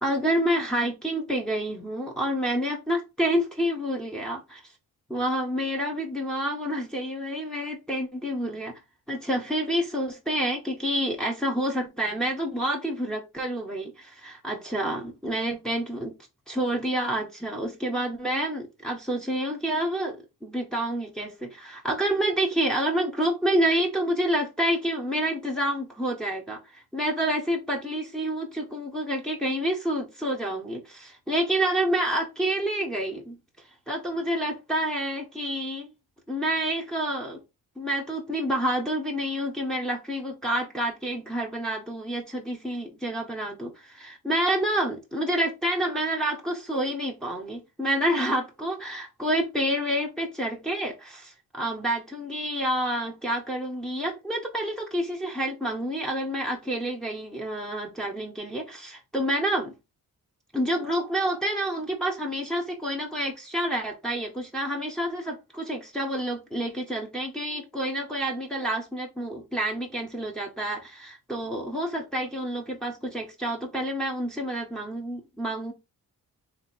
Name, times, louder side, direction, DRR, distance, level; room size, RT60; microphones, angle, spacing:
voice 1, 0.0-4.6 5.1-8.8 9.1-16.1 16.5-20.2 20.4-33.4 33.9-35.9 36.3-37.4 37.8-59.7 60.5-75.7, right 1 dB, ahead, 1.4 m, -28 dB
3.7 x 3.3 x 4.3 m
cardioid pair, 95°, 38 cm